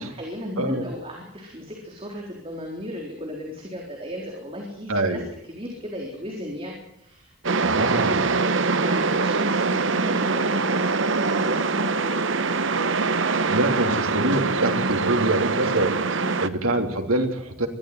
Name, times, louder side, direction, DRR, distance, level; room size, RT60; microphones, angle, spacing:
voice 1, 0.0-5.2 5.5-7.4 7.7-12.9 13.4-13.9 14.2-14.3 16.2-16.5, equal, 25° right, 0 dB, 4.1 m, -36 dB
voice 2, 0.6-0.9 4.9-5.2 7.6-8.3 13.5-16.0 16.4-17.7, right 2 dB, 90° right, 4 dB, 3.3 m, -25 dB
sound 1, 7.4-16.5, right 4 dB, 65° right, 1.0 m, -23 dB
22.5 x 14.5 x 9.6 m, 0.79 s
head